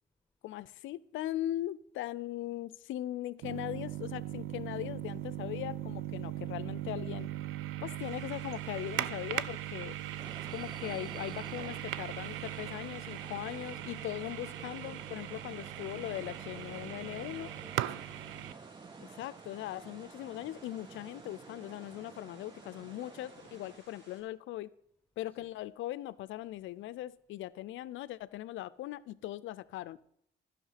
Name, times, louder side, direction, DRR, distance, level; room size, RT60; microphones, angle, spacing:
voice 1, 0.4-7.3 7.8-10.0 10.5-17.5 19.0-24.7 25.2-30.0, left 14 dB, 80° left, 17 dB, 0.5 m, -40 dB
sound 1, 3.4-18.5, right 13 dB, 85° right, 0.4 m, -39 dB
sound 2, 8.0-24.2, right 1 dB, 65° right, 3.2 m, -59 dB
sound 3, 10.2-23.8, right 4 dB, 25° right, 0.4 m, -51 dB
voice 2, 16.1-16.9 17.4-18.9 25.3-25.5, left 2 dB, 10° left, 0 dB, 1.6 m, -60 dB
11.0 x 5.8 x 5.7 m, 0.72 s
cardioid pair, 90°, 20 cm